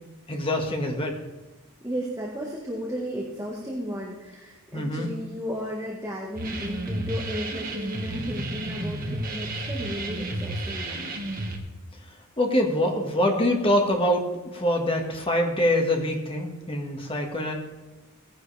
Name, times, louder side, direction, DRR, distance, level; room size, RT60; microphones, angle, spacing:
voice 1, 0.3-1.2 4.7-5.1 12.4-17.5, left 1 dB, 25° left, 2 dB, 1.7 m, -24 dB
voice 2, 1.8-11.1 17.0-17.2, equal, 15° right, -3 dB, 1.5 m, -34 dB
sound 1, 6.4-11.6, right 1 dB, 40° right, 1.5 m, -32 dB
17.0 x 10.5 x 3.4 m, 1.1 s
head